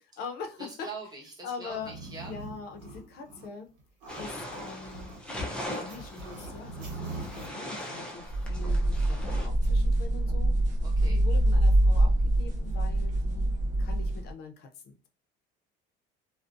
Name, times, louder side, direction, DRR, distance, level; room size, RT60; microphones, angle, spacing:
voice 1, 0.0-0.9 1.4-1.9 2.2-3.7 4.2-5.1 5.7-10.5 11.0-12.1 12.4-13.5 13.8-15.1, left 5 dB, 55° left, 5 dB, 0.6 m, -42 dB
voice 2, 0.6-2.3 10.8-11.2, right 3 dB, 20° right, -1 dB, 0.9 m, -43 dB
sound 1, 1.6-3.5 3.8-7.5, right 3 dB, 85° right, 1.0 m, -42 dB
sound 2, 4.1-9.5, left 1 dB, 5° left, 0.5 m, -40 dB
sound 3, 8.3-14.3, right 1 dB, 40° right, 0.6 m, -25 dB
2.5 x 2.1 x 2.4 m, 0.34 s
cardioid pair, 135°, 19 cm